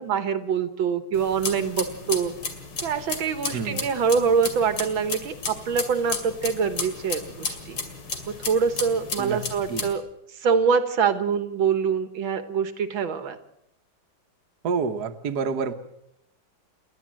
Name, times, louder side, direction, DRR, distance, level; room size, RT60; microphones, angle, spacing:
voice 1, 0.0-2.3 2.8-7.8 8.3-10.0 10.4-13.4, right 6 dB, 75° right, 10 dB, 2.0 m, -25 dB
sound 1, 1.1-9.9, left 4 dB, 85° left, 3.3 m, -33 dB
voice 2, 3.5-3.9 9.2-9.4 9.7-9.9 14.6-15.7, right 5 dB, 55° right, 6 dB, 1.6 m, -28 dB
29.0 x 12.0 x 7.5 m, 0.78 s
omnidirectional pair, 2.2 m